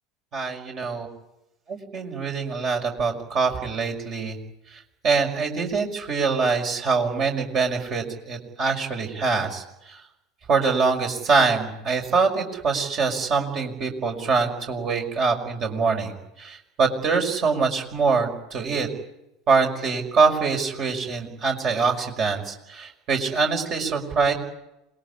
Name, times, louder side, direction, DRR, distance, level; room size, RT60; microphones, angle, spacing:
voice 1, 0.3-1.1 1.7-4.4 4.7-10.0 10.5-18.9 19.5-24.3, right 4 dB, 40° right, 2 dB, 5.6 m, -24 dB
27.5 x 20.0 x 10.0 m, 0.89 s
figure-of-eight pair, 70°, 0 cm